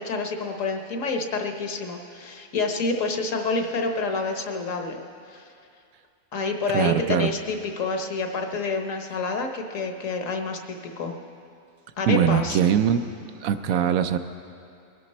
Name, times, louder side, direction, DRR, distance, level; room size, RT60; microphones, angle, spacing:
voice 1, 0.0-5.5 6.3-11.1 12.0-12.6, left 3 dB, 70° left, 4 dB, 1.4 m, -28 dB
voice 2, 6.7-7.3 12.1-13.0 13.4-14.2, right 9 dB, 75° right, 9 dB, 1.0 m, -21 dB
22.0 x 11.0 x 4.2 m, 2.5 s
omnidirectional pair, 1.5 m